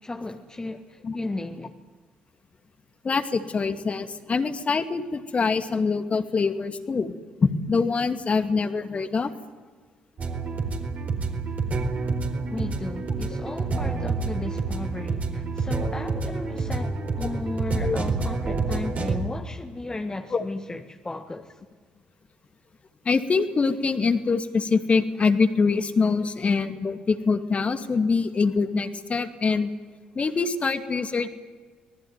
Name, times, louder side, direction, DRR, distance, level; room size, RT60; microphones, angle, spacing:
voice 1, 0.0-1.7 12.5-21.6, left 2 dB, 20° left, 1.7 m, -35 dB
voice 2, 3.0-7.1 7.4-9.3 16.2-16.3 17.2-17.3 17.8-18.0 20.3-20.4 23.0-29.7 30.1-31.3, left 4 dB, 35° left, 2.3 m, -24 dB
sound 1, 10.2-19.2, right 3 dB, 45° right, 4.4 m, -28 dB
25.5 x 20.0 x 9.7 m
figure-of-eight pair, 45°, 4 cm